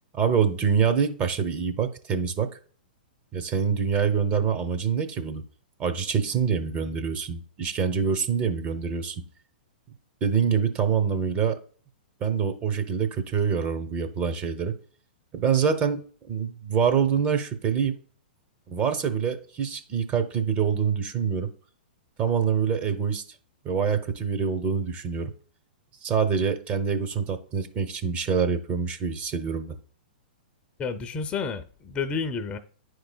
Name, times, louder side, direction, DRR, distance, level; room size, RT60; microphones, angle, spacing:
voice 1, 0.1-2.5 3.3-5.4 5.8-9.2 10.2-11.6 12.2-14.7 15.3-18.0 18.7-21.5 22.2-23.2 23.6-25.3 26.0-29.8, right 6 dB, 30° right, 0.8 m, -25 dB
voice 2, 30.8-32.6, left 5 dB, 20° left, 0.6 m, -30 dB
9.9 x 4.7 x 2.2 m
hypercardioid pair, 120°, 5 cm